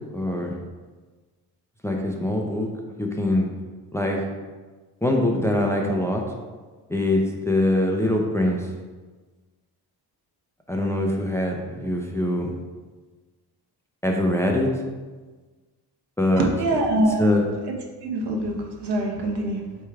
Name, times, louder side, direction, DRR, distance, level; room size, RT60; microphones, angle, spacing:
voice 1, 0.1-0.5 1.8-2.7 3.0-3.5 3.9-4.2 5.0-6.2 6.9-8.6 10.7-12.5 14.0-14.7 16.2-16.5 17.2-17.4, left 1 dB, 5° left, 0 dB, 0.6 m, -23 dB
voice 2, 16.4-17.3 17.7-19.6, right 1 dB, 70° right, 1 dB, 1.2 m, -25 dB
8.0 x 3.3 x 3.5 m, 1.3 s
cardioid pair, 115°, 41 cm